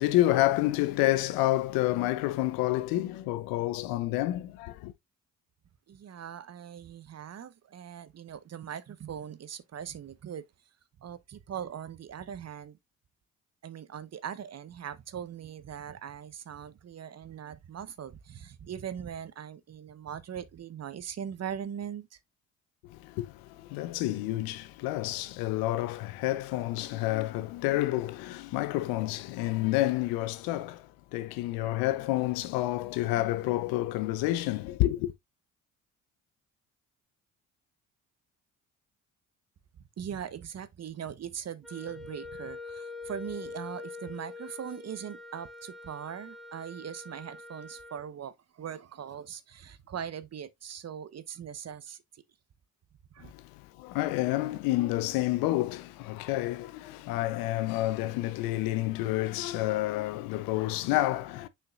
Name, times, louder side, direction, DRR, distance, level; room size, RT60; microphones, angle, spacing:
voice 1, 0.0-4.9 22.8-35.1 53.2-61.5, left 16 dB, 75° left, 0.8 m, -29 dB
voice 2, 5.9-10.5 11.0-12.8 13.6-22.2 40.0-52.2 53.1-53.3, right 8 dB, 45° right, 1.0 m, -40 dB
Wind instrument woodwind instrument, 41.6-48.1, left 3 dB, ahead, 1.7 m, -44 dB
6.7 x 5.8 x 2.4 m
hypercardioid pair, 55°, 36 cm